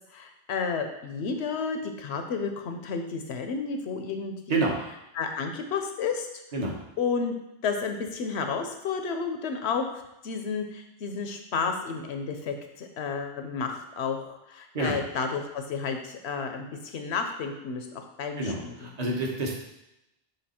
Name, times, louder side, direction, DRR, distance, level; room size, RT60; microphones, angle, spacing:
voice 1, 0.1-4.7 5.2-6.3 7.0-7.3 7.6-18.9, left 5 dB, 80° left, 5 dB, 1.0 m, -31 dB
voice 2, 18.4-19.5, right 2 dB, 40° right, -1 dB, 1.1 m, -28 dB
7.0 x 3.2 x 4.3 m, 0.88 s
omnidirectional pair, 1.1 m